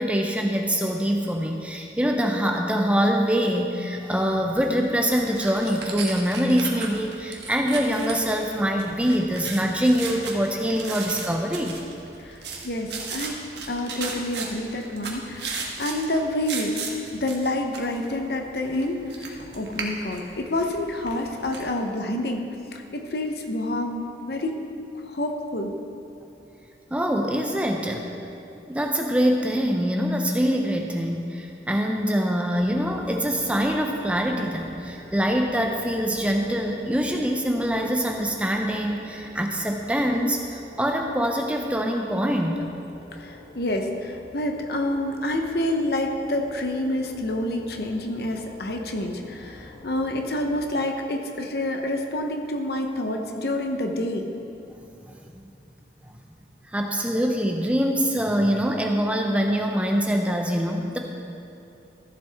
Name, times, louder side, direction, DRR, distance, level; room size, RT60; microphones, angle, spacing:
voice 1, 0.0-11.8 26.9-28.1 28.7-42.7 56.7-61.0, equal, 5° right, 2 dB, 0.6 m, -24 dB
sound 1, 4.5-21.6, right 4 dB, 75° right, 1.3 m, -37 dB
voice 2, 12.2-13.4 13.7-16.8 17.1-22.4 22.7-24.6 25.1-25.7 43.1-54.3, left 1 dB, 65° left, 3 dB, 0.9 m, -28 dB
sound 2, 32.5-50.7, left 2 dB, 50° left, 1.1 m, -47 dB
14.0 x 7.5 x 3.5 m, 2.8 s
head